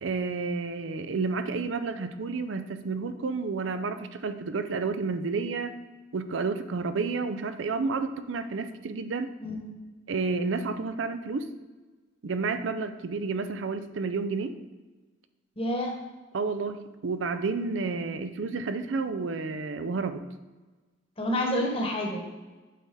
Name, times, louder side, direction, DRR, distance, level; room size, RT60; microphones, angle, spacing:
voice 1, 0.0-5.7 6.1-9.3 10.1-11.5 12.2-14.5 16.3-20.2, right 4 dB, 75° right, 10 dB, 0.5 m, -30 dB
voice 2, 15.6-15.9 21.2-22.3, left 1 dB, 30° left, 0 dB, 1.2 m, -28 dB
8.4 x 4.2 x 3.7 m, 1.3 s
head